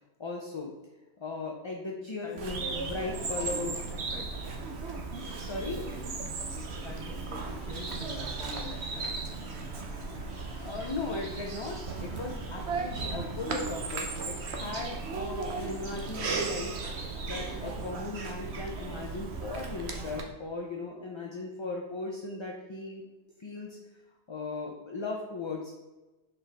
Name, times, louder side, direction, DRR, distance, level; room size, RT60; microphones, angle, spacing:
voice 1, 0.2-0.7 1.2-3.7 5.4-5.8 10.6-23.0 23.4-23.8 24.3-25.7, left 3 dB, 35° left, 0 dB, 0.5 m, -37 dB
voice 2, 2.2-4.3 6.5-9.2 14.8-14.9, left 2 dB, ahead, -4 dB, 1.2 m, -45 dB
Bird vocalization bird call bird song, 2.4-20.2, right 4 dB, 70° right, 1.1 m, -36 dB
sound 1, 2.7-18.0, left 4 dB, 80° left, 1.2 m, -55 dB
6.1 x 4.6 x 3.4 m, 1.1 s
omnidirectional pair, 1.2 m